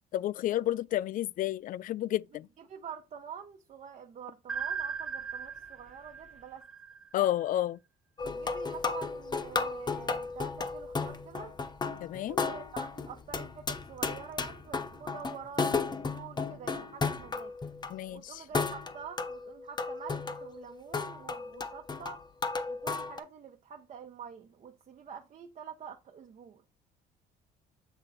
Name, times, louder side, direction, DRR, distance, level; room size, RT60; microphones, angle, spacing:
voice 1, 0.1-2.5 7.1-7.8 12.0-12.4 17.9-18.4, left 13 dB, 55° left, 0.4 m, -31 dB
voice 2, 2.6-6.6 8.2-11.5 12.3-17.5 18.1-22.2 22.7-26.6, right 7 dB, 45° right, 1.0 m, -47 dB
sound 1, 4.5-7.4, right 6 dB, 5° right, 1.1 m, -38 dB
sound 2, 8.2-17.9 18.5-23.2, left 4 dB, 25° left, 1.0 m, -34 dB
8.0 x 3.8 x 4.2 m
cardioid pair, 110°, 17 cm